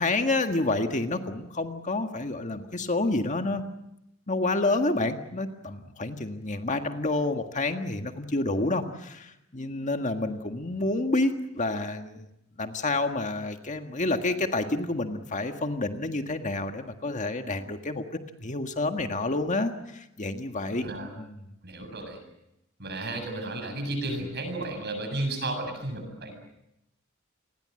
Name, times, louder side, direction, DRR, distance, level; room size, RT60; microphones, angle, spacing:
voice 1, 0.0-3.6 4.3-12.3 12.6-18.0 18.4-20.8 21.2-21.3, left 2 dB, 35° left, 6 dB, 1.7 m, -29 dB
voice 2, 20.8-21.1 21.6-22.2 22.8-26.3, right 2 dB, 55° right, 6 dB, 7.5 m, -33 dB
28.5 x 21.0 x 7.8 m, 0.86 s
head